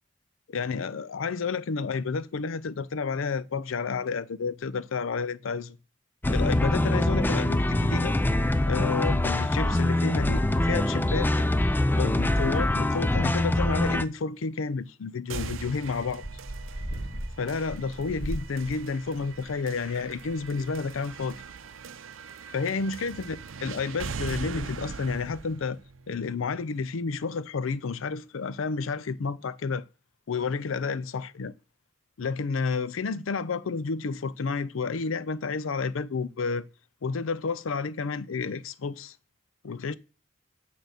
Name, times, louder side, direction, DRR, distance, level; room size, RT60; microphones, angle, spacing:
voice 1, 0.5-5.8 6.3-8.1 8.7-11.5 11.9-16.2 17.4-21.4 22.5-25.8 26.1-29.8 30.3-31.5 32.2-36.7 37.0-39.2 39.6-39.9, left 4 dB, 90° left, 0.5 m, -30 dB
sound 1, 6.2-14.1, left 1 dB, 10° left, 0.3 m, -24 dB
sound 2, 15.3-27.3, right 5 dB, 85° right, 0.6 m, -41 dB
sound 3, 16.2-19.5 19.8-20.3 20.6-20.7 20.9-21.0, right 1 dB, 60° left, 2.2 m, -37 dB
9.1 x 3.8 x 6.4 m
head